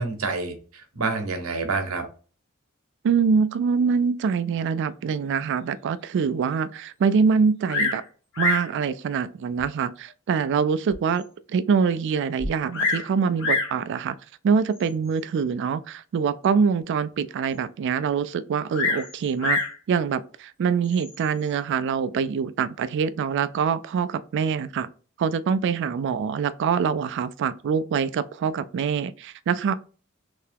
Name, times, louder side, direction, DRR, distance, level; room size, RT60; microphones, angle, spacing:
voice 1, 0.0-2.0, right 3 dB, 70° right, 0.9 m, -28 dB
voice 2, 3.0-8.0 8.4-11.2 11.5-14.2 14.4-19.6 19.9-24.9 25.2-29.7, right 6 dB, 55° right, 0.3 m, -24 dB
Bird vocalization bird call bird song, 7.7-8.1 8.3-8.7 9.6-9.7 10.3-10.4 10.9-11.0 11.2-11.3 12.4-13.1 13.4-13.8 14.8-15.1 18.7-19.8 20.8-21.3, left 3 dB, 60° left, 1.2 m, -26 dB
3.4 x 2.8 x 3.4 m
head